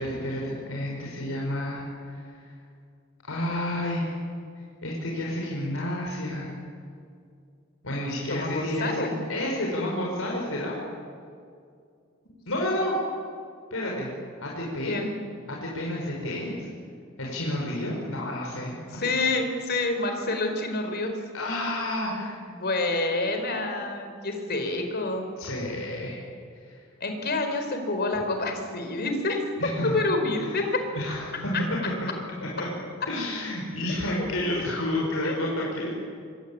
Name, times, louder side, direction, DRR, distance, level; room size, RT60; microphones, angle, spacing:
voice 1, 0.0-2.5 3.2-4.2 4.6-6.5 7.8-10.7 12.5-12.9 13.7-14.1 14.4-15.0 15.5-16.7 17.2-19.0 21.3-22.3 25.4-26.2 26.6-26.8 29.6-29.9 30.3-31.5 32.4-32.7 33.1-36.0, left 1 dB, 75° left, -2 dB, 5.4 m, -30 dB
voice 2, 8.3-9.1 14.9-15.1 18.9-21.2 22.6-25.2 27.0-29.4 29.8-30.8 33.9-34.3 34.5-34.6 35.2-35.5, left 2 dB, 50° left, 5 dB, 4.7 m, -28 dB
26.5 x 24.0 x 8.8 m, 2.3 s
head